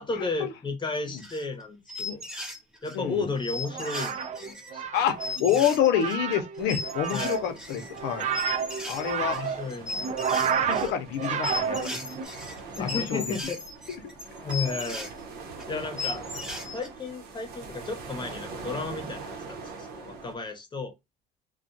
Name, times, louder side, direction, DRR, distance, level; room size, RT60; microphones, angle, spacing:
voice 1, 0.0-2.2 2.8-4.8 7.1-7.4 9.3-10.8 12.8-13.6 14.4-15.1 15.7-16.2 16.7-20.9, left 3 dB, 25° left, 0.9 m, -34 dB
sound 1, 0.9-1.6 1.9-3.0 3.4-15.1 15.6-15.7 16.0-16.9, left 3 dB, 5° right, 0.8 m, -36 dB
voice 2, 2.9-3.3 4.9-8.3 8.9-9.5 10.4-12.0 12.8-13.3 15.7-15.8, left 9 dB, 90° left, 0.7 m, -28 dB
Wobbling Computer Sounds, 3.6-12.2, right 7 dB, 40° right, 0.4 m, -31 dB
sound 2, 6.6-20.3, right 4 dB, 70° right, 0.8 m, -43 dB
2.4 x 2.2 x 2.6 m
cardioid pair, 110°, 17 cm